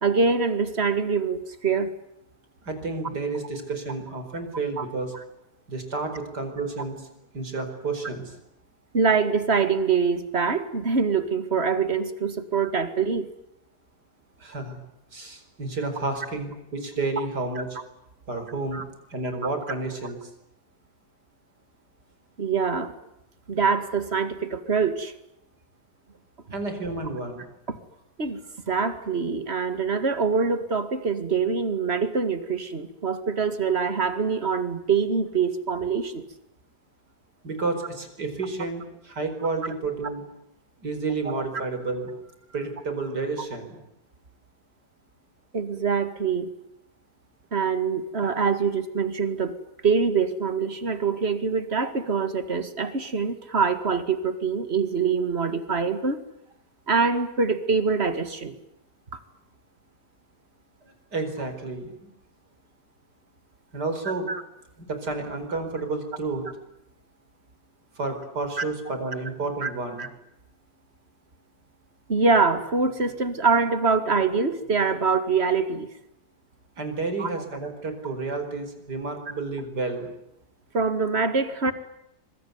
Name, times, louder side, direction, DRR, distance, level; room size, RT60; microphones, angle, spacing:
voice 1, 0.0-1.9 4.8-4.9 5.1-5.2 8.9-13.3 18.7-18.8 22.4-22.9 23.5-25.1 27.7-27.8 28.2-28.4 28.7-36.2 45.5-46.5 47.5-49.6 49.8-56.2 56.9-58.6 64.3-64.4 68.6-68.7 69.6-69.7 70.0-70.1 72.1-75.9 77.2-77.3 80.7-81.7, right 5 dB, 35° right, 10 dB, 2.3 m, -24 dB
voice 2, 2.6-5.1 5.7-7.0 7.3-8.3 14.4-14.8 15.1-17.8 18.3-18.8 19.1-20.2 26.5-27.4 37.4-40.2 40.8-42.1 42.5-43.8 61.1-62.1 63.7-64.3 64.8-66.5 68.0-70.1 76.8-80.1, right 3 dB, 70° right, 8 dB, 5.3 m, -30 dB
25.5 x 23.0 x 9.5 m, 0.82 s
omnidirectional pair, 1.8 m